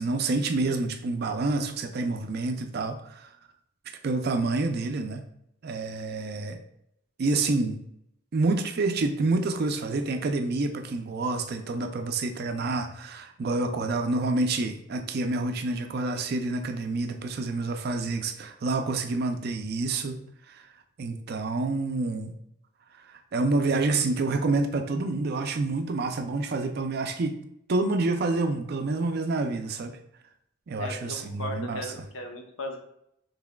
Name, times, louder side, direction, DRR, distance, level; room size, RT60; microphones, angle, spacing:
voice 1, 0.0-3.3 4.0-5.2 5.6-6.6 7.2-7.8 8.3-20.2 20.5-20.6 21.0-22.4 23.3-27.4 27.7-30.0 30.7-31.8, right 3 dB, 50° right, 7 dB, 0.4 m, -28 dB
voice 2, 30.8-32.8, left 1 dB, 75° left, 2 dB, 0.8 m, -37 dB
5.9 x 3.2 x 2.2 m, 0.76 s
head